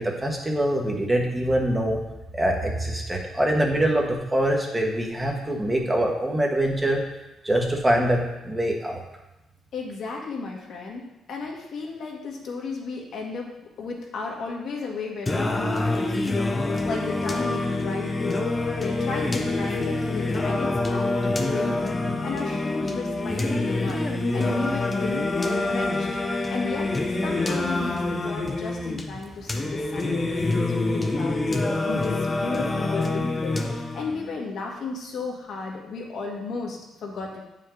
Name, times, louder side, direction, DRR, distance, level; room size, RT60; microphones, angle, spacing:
voice 1, 0.0-2.0 2.4-7.0 7.4-9.0, right 1 dB, 15° right, 0 dB, 1.4 m, -24 dB
voice 2, 9.7-11.0 11.3-22.0 22.2-24.0 24.3-26.1 26.5-26.9 27.2-33.6 33.9-37.4, left 4 dB, 65° left, -1 dB, 1.6 m, -34 dB
Singing, 15.3-34.3, left 2 dB, 25° left, 0.8 m, -26 dB
8.3 x 5.3 x 3.8 m, 0.96 s
cardioid pair, 90°, 0 cm